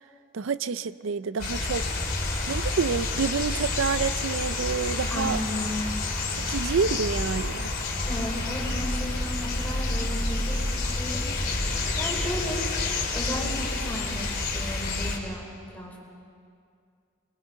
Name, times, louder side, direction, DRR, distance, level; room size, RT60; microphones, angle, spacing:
voice 1, 0.3-1.8 2.5-5.4 6.4-7.7, right 5 dB, 65° right, 15 dB, 0.5 m, -28 dB
sound 1, 1.4-15.2, left 2 dB, 45° left, 3.4 m, -29 dB
voice 2, 5.1-5.8 8.1-12.6 13.1-15.4 15.7-16.0, left 1 dB, 10° left, -3 dB, 4.5 m, -35 dB
28.5 x 23.0 x 5.3 m, 2.3 s
head